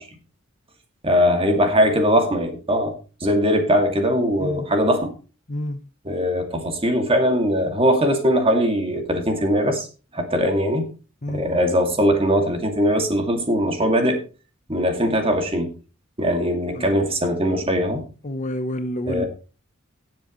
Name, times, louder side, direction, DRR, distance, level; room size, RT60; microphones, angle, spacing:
voice 1, 1.0-5.1 6.0-9.9 10.1-10.8 11.3-14.2 14.7-15.7 16.2-18.0 19.1-19.3, equal, 25° right, 2.4 m, -20 dB
voice 2, 5.5-5.8 11.2-11.4 16.8-17.0 18.2-19.2, left 1 dB, 35° left, 0.9 m, -28 dB
17.5 x 7.5 x 3.1 m
head